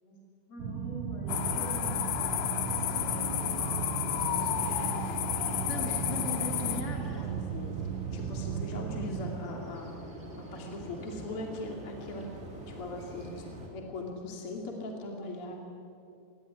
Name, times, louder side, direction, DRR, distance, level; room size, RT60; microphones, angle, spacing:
voice 1, 0.5-2.0 2.7-3.6 4.2-5.7, equal, 55° left, -2 dB, 9.8 m, -45 dB
sound 1, 0.6-9.4, right 8 dB, 85° right, 3.5 m, -36 dB
sound 2, 1.3-6.8, left 11 dB, 80° left, 3.6 m, -32 dB
sound 3, 4.1-13.7, right 1 dB, 15° right, 3.7 m, -45 dB
voice 2, 4.4-5.1 5.7-7.8 8.1-9.9 10.4-12.3 12.7-13.4 13.7-15.6, left 2 dB, 35° left, 1 dB, 2.8 m, -40 dB
26.5 x 21.0 x 9.9 m, 2.6 s
omnidirectional pair, 5.7 m